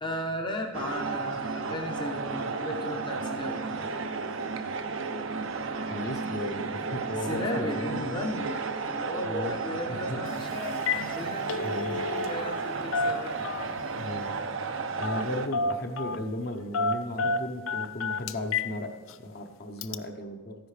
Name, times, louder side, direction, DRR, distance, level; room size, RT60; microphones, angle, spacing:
voice 1, 0.0-3.8 7.2-8.6 8.9-10.8 11.1-13.4, left 1 dB, 20° left, 1 dB, 0.7 m, -35 dB
Muay Thai, 0.7-15.5, right 4 dB, 65° right, 0.6 m, -33 dB
voice 2, 5.9-8.3 9.2-9.6 10.1-10.2 11.6-12.0 14.0-14.4 15.0-19.0 19.2-20.5, left 1 dB, 50° left, 4 dB, 0.9 m, -35 dB
Telephone, 10.2-10.4 10.7-11.1 11.3-12.6 12.9-13.9 15.0-15.3 15.5-16.2 16.7-18.7 19.1-19.2 19.8-19.9, left 3 dB, 70° left, 0.4 m, -30 dB
13.5 x 10.0 x 3.3 m, 1.3 s
head